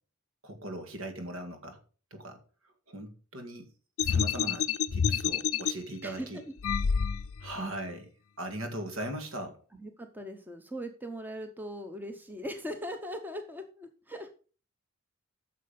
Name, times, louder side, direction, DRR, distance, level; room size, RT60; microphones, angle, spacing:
voice 1, 0.4-1.8 2.1-2.4 2.9-3.7 4.0-6.4 7.4-9.6, right 1 dB, 65° right, 6 dB, 2.1 m, -39 dB
sound 1, 4.0-5.7 6.6-7.5, left 7 dB, 70° left, 0.5 m, -28 dB
voice 2, 6.0-6.5 9.8-14.3, equal, 10° right, 6 dB, 0.9 m, -40 dB
9.7 x 6.7 x 5.3 m, 0.38 s
head